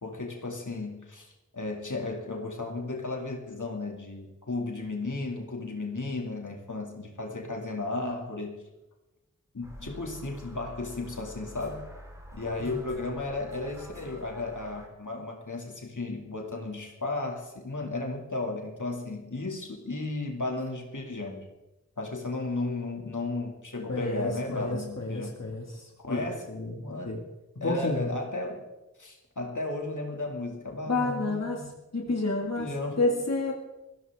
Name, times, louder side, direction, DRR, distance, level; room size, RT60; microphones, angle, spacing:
voice 1, 0.0-8.6 9.5-11.9 12.3-21.5 22.0-25.4 26.0-26.5 26.8-27.2 27.6-28.6 29.0-31.7 32.0-33.0, left 2 dB, 75° left, 0 dB, 2.6 m, -34 dB
sound 1, 9.6-14.9, equal, 10° right, 4.4 m, -47 dB
voice 2, 23.9-26.8 27.1-27.2 27.6-28.1 30.9-31.6 31.9-33.5, left 2 dB, 55° left, -1 dB, 2.2 m, -30 dB
21.5 x 15.5 x 3.7 m, 1.0 s
wide cardioid pair, 50°, 31 cm